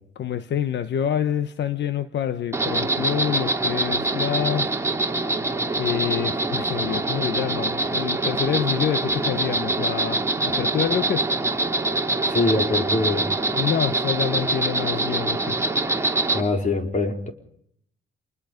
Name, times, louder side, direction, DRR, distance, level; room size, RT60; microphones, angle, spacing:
voice 1, 0.1-4.7 5.7-11.3 13.5-15.7, left 9 dB, 60° left, 11 dB, 1.2 m, -27 dB
Insect, 2.5-16.4, right 2 dB, 15° right, 2.9 m, -24 dB
voice 2, 12.3-13.3 16.3-17.3, left 3 dB, 40° left, 4 dB, 4.4 m, -23 dB
27.5 x 21.0 x 5.3 m, 0.69 s
cardioid pair, 90°, 20 cm